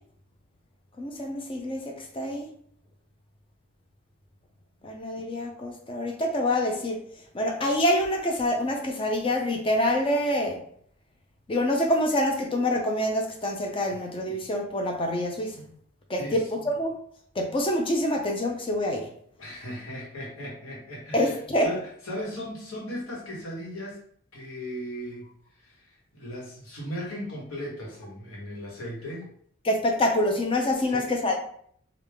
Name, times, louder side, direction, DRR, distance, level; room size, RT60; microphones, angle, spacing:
voice 1, 1.0-2.5 4.8-7.0 7.3-10.6 11.5-15.7 16.1-16.9 17.4-19.1 21.1-21.7 29.6-31.4, left 1 dB, 25° left, 2 dB, 0.5 m, -26 dB
voice 2, 19.4-24.0 24.3-29.3 30.8-31.1, equal, 80° left, -3 dB, 1.3 m, -37 dB
3.4 x 2.4 x 3.4 m, 0.62 s
head